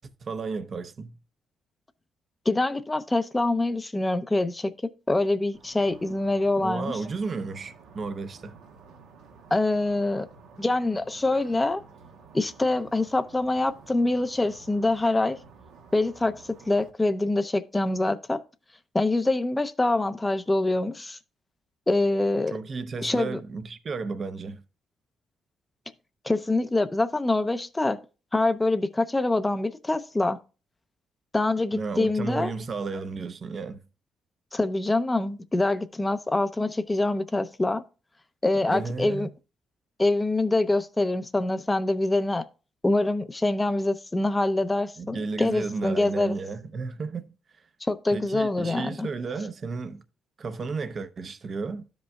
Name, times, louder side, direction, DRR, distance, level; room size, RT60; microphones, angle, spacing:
voice 1, 0.2-1.2 6.6-8.5 22.5-24.6 31.7-33.8 38.5-39.3 45.0-47.4 48.1-50.0 50.4-51.8, right 4 dB, 45° right, 0.8 m, -33 dB
voice 2, 2.5-4.7 5.1-7.0 9.5-10.3 10.6-11.8 12.3-15.4 15.9-18.4 18.9-21.2 21.9-22.6 23.0-23.4 26.2-28.0 28.3-30.4 31.3-32.5 34.5-37.8 38.4-39.3 40.0-42.5 42.8-46.3 47.8-49.1, left 2 dB, 15° left, 0.6 m, -25 dB
sound 1, 5.5-16.9, right 4 dB, 90° right, 1.2 m, -51 dB
12.5 x 5.2 x 2.3 m
cardioid pair, 90°, 0 cm